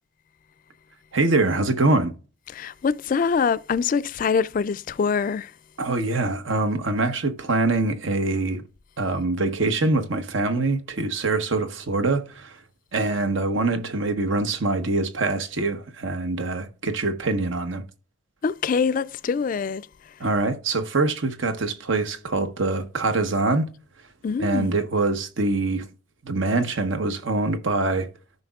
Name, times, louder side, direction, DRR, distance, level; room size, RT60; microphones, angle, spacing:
voice 1, 1.1-2.1 5.8-8.6 9.0-12.6 12.9-17.8 20.2-23.7 24.4-25.9 26.2-28.1, right 2 dB, 75° right, 1.0 m, -24 dB
voice 2, 2.5-5.5 18.4-19.9 24.2-24.7, left 5 dB, 45° left, 0.3 m, -24 dB
14.0 x 5.2 x 2.4 m
head